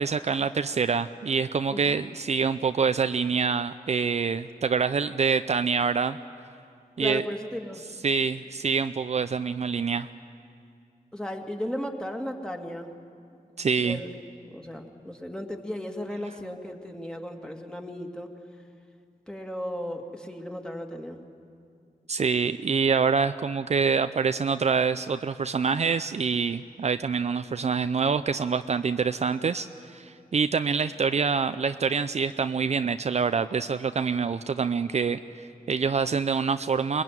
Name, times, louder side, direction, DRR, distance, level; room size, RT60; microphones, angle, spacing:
voice 1, 0.0-6.2 7.0-7.3 8.0-10.1 13.6-14.0 22.1-37.0, right 5 dB, 50° right, 10 dB, 0.6 m, -26 dB
voice 2, 7.0-7.8 11.1-12.9 13.8-14.1 14.5-18.3 19.3-21.2, left 1 dB, 5° left, 3 dB, 2.3 m, -35 dB
22.5 x 21.0 x 9.3 m, 2.4 s
cardioid pair, 80°, 15 cm